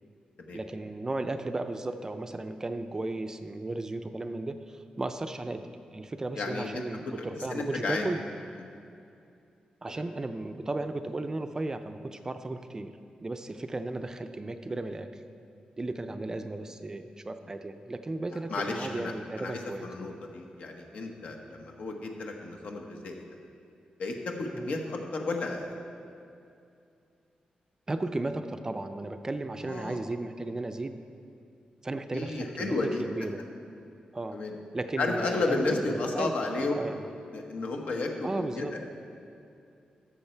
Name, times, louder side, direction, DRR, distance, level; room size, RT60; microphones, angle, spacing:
voice 1, 0.5-8.2 9.8-15.1 15.8-19.9 24.5-24.7 27.9-31.0 31.8-33.4 34.1-34.4 34.7-36.3 36.8-37.1 38.2-38.8, right 2 dB, 25° right, 8 dB, 0.4 m, -35 dB
voice 2, 6.4-6.8 7.5-8.1 8.6-8.7 18.5-23.2 24.0-25.8 29.6-30.0 32.1-33.1 34.3-34.5 35.0-36.7 37.3-38.9, left 3 dB, 70° left, 2 dB, 1.2 m, -32 dB
13.0 x 6.8 x 4.5 m, 2.5 s
wide cardioid pair, 120°, 3 cm